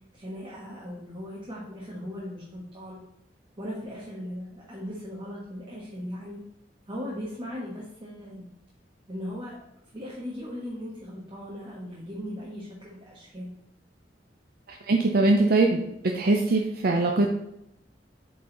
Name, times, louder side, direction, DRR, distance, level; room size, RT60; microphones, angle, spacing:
voice 1, 0.1-3.0 3.6-6.4 6.9-8.5 9.1-9.6 9.9-13.5, equal, 25° right, -5 dB, 1.4 m, -38 dB
voice 2, 14.7-15.8 16.1-17.3, right 2 dB, 55° right, 2 dB, 0.6 m, -22 dB
8.6 x 4.0 x 3.9 m, 0.82 s
head